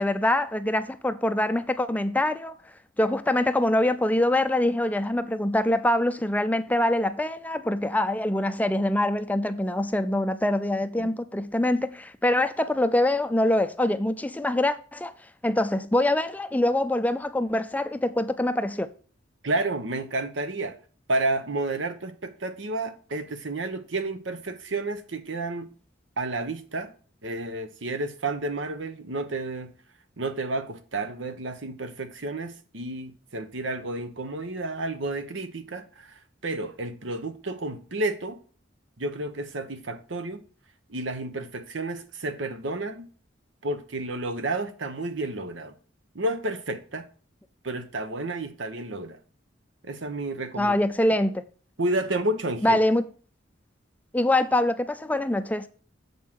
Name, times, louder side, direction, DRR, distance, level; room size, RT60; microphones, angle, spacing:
voice 1, 0.0-2.6 3.0-15.1 15.4-18.9 50.6-51.4 52.6-53.0 54.1-55.7, left 1 dB, 10° left, 0.4 m, -24 dB
voice 2, 19.4-20.8 21.1-25.7 26.2-26.9 27.2-29.7 30.2-38.4 39.0-40.4 40.9-43.1 43.6-45.7 46.1-47.1 47.6-49.2 49.8-50.7 51.8-52.8, right 2 dB, 80° right, 1.0 m, -31 dB
7.5 x 5.5 x 6.1 m
head